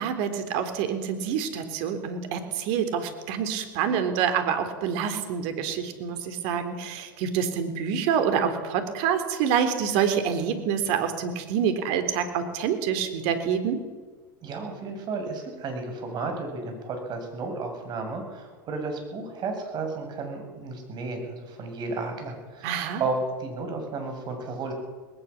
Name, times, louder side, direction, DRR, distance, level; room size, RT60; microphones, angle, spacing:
voice 1, 0.0-13.8 22.6-23.0, right 7 dB, 60° right, 8 dB, 3.8 m, -27 dB
voice 2, 14.4-24.7, right 3 dB, 40° right, 4 dB, 7.9 m, -33 dB
20.5 x 19.0 x 7.4 m, 1.4 s
hypercardioid pair, 90°, 11 cm